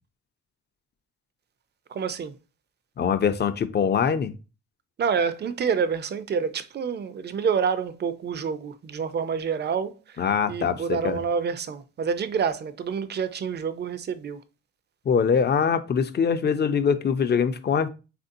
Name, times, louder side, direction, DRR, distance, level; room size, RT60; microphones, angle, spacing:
voice 1, 1.9-2.3 5.0-14.4, right 6 dB, 35° right, 0.5 m, -28 dB
voice 2, 3.0-4.3 10.2-11.2 15.1-17.9, left 6 dB, 30° left, 0.5 m, -23 dB
3.4 x 2.6 x 2.6 m
supercardioid pair, 60°, 33 cm